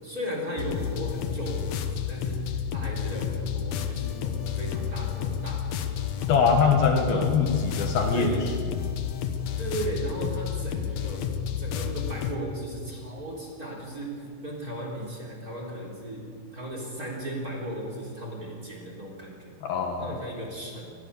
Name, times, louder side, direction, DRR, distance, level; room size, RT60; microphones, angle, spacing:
voice 1, 0.0-1.8 2.1-2.4 2.7-5.9 6.2-6.5 7.1-7.3 8.1-8.5 9.6-11.3 11.6-16.3 16.5-19.5 20.0-20.9, right 1 dB, 20° right, 0 dB, 3.8 m, -36 dB
sound 1, 0.6-12.3, left 8 dB, 85° left, 1.5 m, -31 dB
voice 2, 6.3-8.3 19.6-20.1, left 5 dB, 65° left, 4 dB, 3.2 m, -23 dB
27.5 x 20.0 x 6.9 m, 2.3 s
omnidirectional pair, 5.0 m